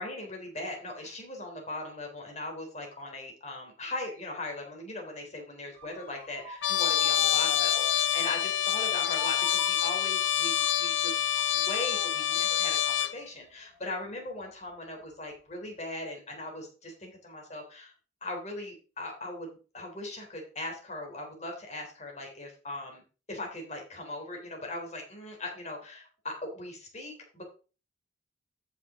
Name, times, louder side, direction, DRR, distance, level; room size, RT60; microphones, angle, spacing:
voice 1, 0.0-17.9 18.2-23.0 23.3-27.4, left 2 dB, 40° left, 1 dB, 3.4 m, -39 dB
Motor vehicle (road) / Siren, 5.7-14.7 15.1-15.5, left 1 dB, 10° left, 4.1 m, -46 dB
Trumpet, 6.6-13.2, left 11 dB, 80° left, 0.7 m, -27 dB
14.0 x 5.9 x 3.7 m, 0.35 s
head